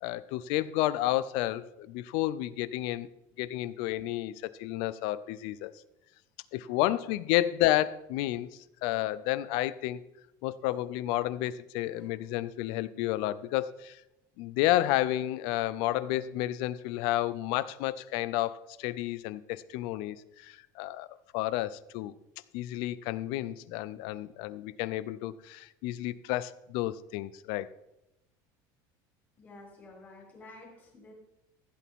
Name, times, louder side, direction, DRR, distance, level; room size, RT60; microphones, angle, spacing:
voice 1, 0.0-3.1 3.4-5.7 6.5-8.5 8.8-10.0 10.4-14.0 14.4-21.1 21.3-22.1 22.5-27.7, left 15 dB, 60° left, 17 dB, 0.5 m, -31 dB
voice 2, 29.4-31.1, left 2 dB, 20° left, -2 dB, 3.1 m, -51 dB
15.5 x 8.4 x 3.6 m, 0.89 s
cardioid pair, 170°, 9 cm